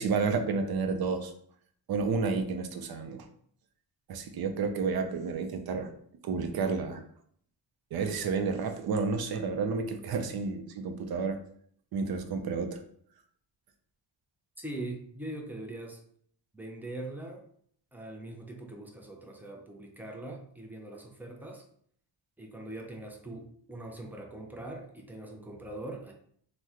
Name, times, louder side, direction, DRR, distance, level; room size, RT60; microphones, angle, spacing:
voice 1, 0.0-1.3 1.9-3.2 4.1-5.9 6.2-7.0 7.9-11.4 11.9-12.8, right 4 dB, 55° right, 7 dB, 0.5 m, -30 dB
voice 2, 14.6-16.0 16.5-17.4 17.9-21.6 22.4-26.1, right 1 dB, 5° right, 1 dB, 0.4 m, -42 dB
2.9 x 2.1 x 3.5 m, 0.62 s
wide cardioid pair, 130°, 45 cm